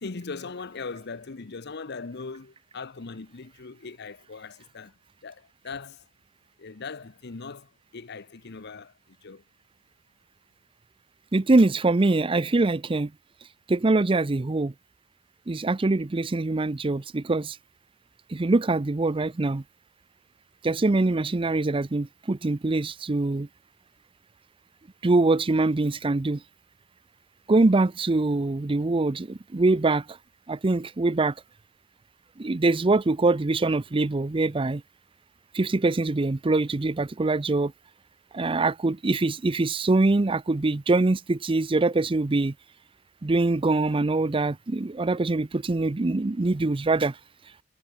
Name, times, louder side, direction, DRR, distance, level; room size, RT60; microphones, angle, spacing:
voice 1, 0.0-4.9 5.2-6.0 6.6-9.4, left 4 dB, 50° left, 0.8 m, -39 dB
voice 2, 11.3-13.1 13.7-14.7 15.5-17.6 18.3-19.6 20.6-23.5 25.0-26.4 27.5-30.2 30.5-31.3 32.4-34.8 35.5-37.7 38.3-42.5 43.2-47.2, right 2 dB, 25° right, 0.5 m, -23 dB
head